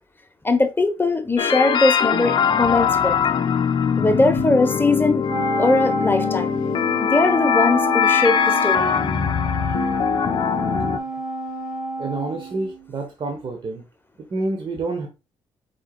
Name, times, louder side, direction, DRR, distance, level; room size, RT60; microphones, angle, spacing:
voice 1, 0.4-3.1 4.0-5.3 5.6-6.5 7.0-9.0, left 2 dB, 20° left, 1.0 m, -20 dB
sound 1, 1.4-11.0, left 7 dB, 50° left, 0.5 m, -21 dB
Wind instrument woodwind instrument, 5.3-12.9, right 1 dB, 85° right, 3.1 m, -28 dB
voice 2, 12.0-13.8 14.3-15.1, right 3 dB, 50° right, 1.2 m, -28 dB
4.8 x 4.6 x 2.3 m
supercardioid pair, 65°, 11 cm